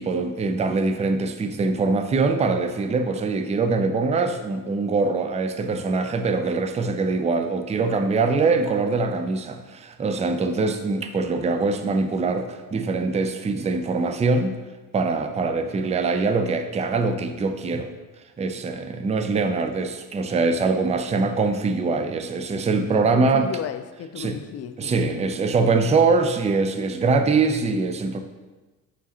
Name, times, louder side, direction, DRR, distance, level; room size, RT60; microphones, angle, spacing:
voice 1, 0.0-14.5 14.9-17.9 18.4-23.5 24.2-24.4 24.8-28.2, right 4 dB, 15° right, 0.5 m, -23 dB
voice 2, 22.9-25.3, left 9 dB, 35° left, 0.4 m, -34 dB
7.1 x 4.6 x 2.9 m
hypercardioid pair, 65°, 45 cm